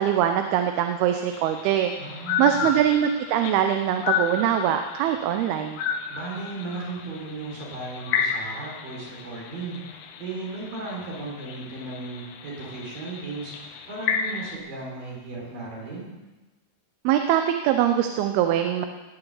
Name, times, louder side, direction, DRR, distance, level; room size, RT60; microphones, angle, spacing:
voice 1, 0.0-1.9 2.4-5.8 17.0-18.9, right 10 dB, 85° right, 6 dB, 2.7 m, -22 dB
sound 1, 1.3-14.6, left 7 dB, 85° left, 3.0 m, -32 dB
voice 2, 2.0-2.6 6.1-13.5 13.8-16.2, right 3 dB, 60° right, -2 dB, 5.5 m, -36 dB
18.0 x 7.0 x 8.1 m, 1.2 s
omnidirectional pair, 4.4 m